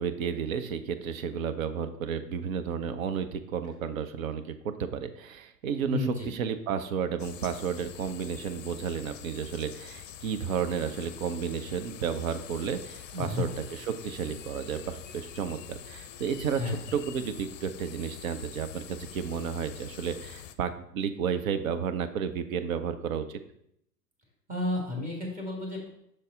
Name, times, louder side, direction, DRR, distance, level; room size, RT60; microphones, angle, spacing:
voice 1, 0.0-23.4, right 7 dB, 55° right, 9 dB, 0.7 m, -32 dB
voice 2, 5.9-6.3 13.1-13.4 16.6-16.8 24.5-25.9, left 3 dB, 15° right, -2 dB, 1.8 m, -31 dB
sound 1, 7.2-20.6, left 10 dB, 55° left, 0.5 m, -45 dB
6.5 x 4.0 x 3.7 m, 0.75 s
figure-of-eight pair, 105°, 48 cm